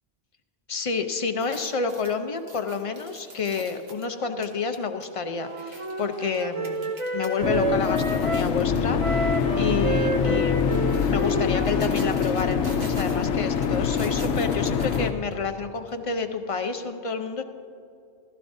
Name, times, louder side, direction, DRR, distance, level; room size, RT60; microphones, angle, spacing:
voice 1, 0.7-10.6 11.1-17.4, left 5 dB, 40° left, 7 dB, 0.5 m, -29 dB
sound 1, 1.3-7.3 7.7-8.9 9.3-9.5 10.4-15.5 15.9-16.0, right 3 dB, 65° right, 1.4 m, -45 dB
Wind instrument woodwind instrument, 5.3-8.5 9.0-12.3, right 2 dB, 35° right, 0.6 m, -30 dB
sound 2, 7.4-15.1, left 6 dB, 85° left, 0.9 m, -24 dB
15.5 x 13.5 x 2.6 m, 2.5 s
omnidirectional pair, 1.2 m